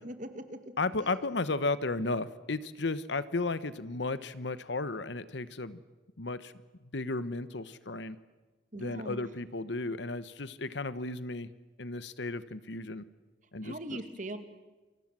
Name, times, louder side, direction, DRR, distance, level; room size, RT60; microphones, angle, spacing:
voice 1, 0.0-0.6 1.0-1.1 8.7-9.2 13.6-14.4, right 1 dB, 40° right, 9 dB, 2.2 m, -40 dB
voice 2, 0.8-5.8 6.2-6.5 6.9-8.2 8.7-11.5 11.8-13.0 13.5-14.0, left 3 dB, 70° left, 15 dB, 1.1 m, -34 dB
29.0 x 23.5 x 7.5 m, 1.2 s
head